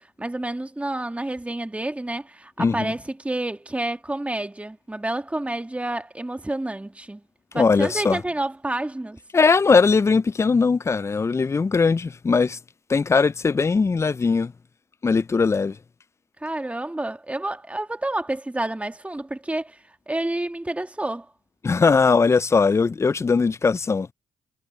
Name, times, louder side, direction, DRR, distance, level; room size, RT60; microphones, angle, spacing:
voice 1, 0.0-7.2 7.5-9.2 16.4-19.8 20.1-21.3, right 1 dB, 10° right, 2.1 m, -29 dB
voice 2, 2.6-2.9 7.5-8.2 9.3-12.6 12.9-14.5 15.0-15.8 21.6-24.1, left 4 dB, 25° left, 0.4 m, -20 dB
supercardioid pair, 60°, 11 cm